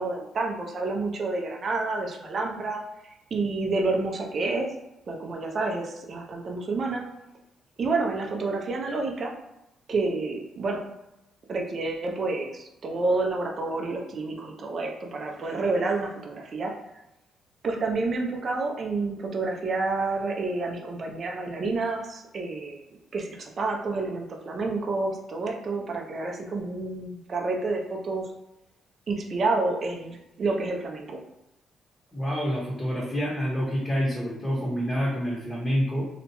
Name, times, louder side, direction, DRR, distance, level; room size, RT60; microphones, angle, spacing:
voice 1, 0.0-4.7 5.1-7.0 7.8-9.3 9.9-10.8 11.5-16.7 17.6-22.8 23.1-28.2 29.1-31.2, right 3 dB, 50° right, 1 dB, 0.5 m, -29 dB
voice 2, 32.1-36.1, equal, 10° left, -5 dB, 0.8 m, -27 dB
2.8 x 2.2 x 2.8 m, 0.90 s
cardioid pair, 90°, 0 cm